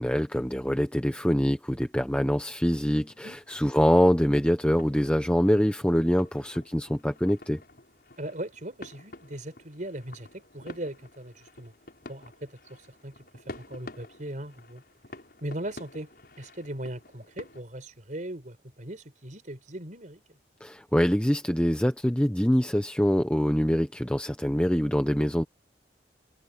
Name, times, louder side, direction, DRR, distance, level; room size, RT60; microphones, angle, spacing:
voice 1, 0.0-7.6 20.6-25.4, equal, 5° left, 1.0 m, -24 dB
sound 1, 2.9-17.6, left 2 dB, 60° left, 7.0 m, -49 dB
voice 2, 8.2-11.7 12.1-14.8 15.4-16.1 16.4-20.4, right 1 dB, 45° right, 4.6 m, -39 dB
head